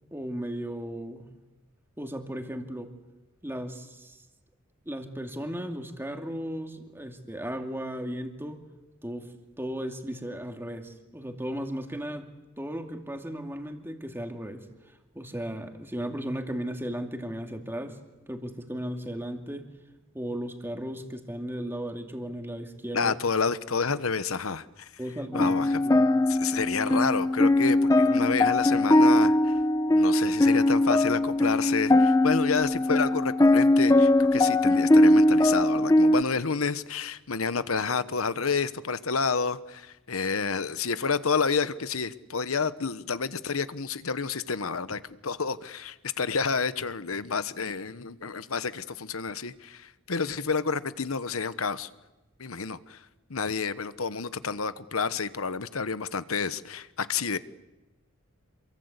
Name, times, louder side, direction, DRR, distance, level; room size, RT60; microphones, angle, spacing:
voice 1, 0.1-1.3 2.0-2.9 3.4-4.2 4.9-8.6 9.0-9.3 9.6-14.7 15.1-18.0 18.3-19.7 20.1-23.2 25.0-25.5 25.8-26.1, equal, 10° right, 4 dB, 2.4 m, -35 dB
voice 2, 22.9-24.9 25.3-25.8 26.3-29.5 29.9-51.9 52.4-53.0 53.3-57.4, left 5 dB, 85° left, 13 dB, 1.1 m, -29 dB
sound 1, 25.3-36.2, left 1 dB, 15° left, 0.8 m, -21 dB
27.5 x 23.5 x 8.3 m, 1.1 s
head